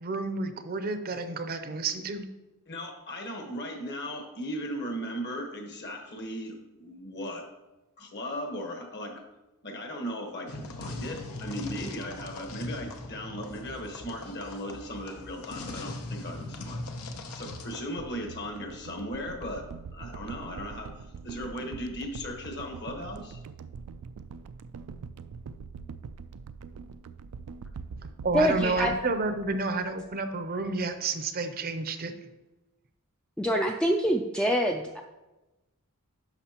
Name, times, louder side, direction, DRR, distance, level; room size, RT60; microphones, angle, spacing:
voice 1, 0.0-2.3 28.2-32.1, right 3 dB, 45° right, 8 dB, 0.6 m, -30 dB
voice 2, 2.7-7.5 8.0-9.2 9.6-16.8 17.3-23.4, equal, 50° left, 3 dB, 1.3 m, -37 dB
sound 1, 10.5-17.8, left 2 dB, 85° left, 0.8 m, -40 dB
sound 2, 18.0-30.3 30.6-30.7, right 5 dB, 85° right, 0.4 m, -43 dB
voice 3, 28.3-28.9 33.4-35.0, equal, 5° left, 2 dB, 0.3 m, -25 dB
11.0 x 5.8 x 2.9 m, 1.0 s
head